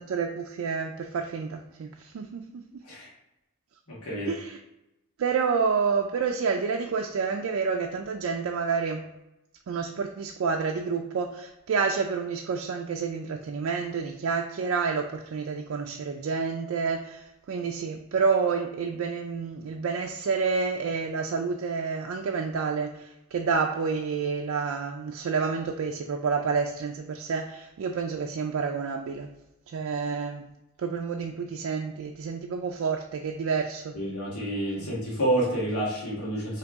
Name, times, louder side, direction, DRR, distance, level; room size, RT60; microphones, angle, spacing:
voice 1, 0.0-2.8 4.3-4.6 5.2-9.1 9.7-29.3 29.7-30.4 30.8-33.9 34.8-34.9, right 5 dB, 70° right, 2 dB, 0.3 m, -29 dB
voice 2, 3.9-4.3 33.9-36.6, right 1 dB, 85° left, -5 dB, 1.4 m, -29 dB
3.9 x 2.8 x 3.5 m, 0.94 s
head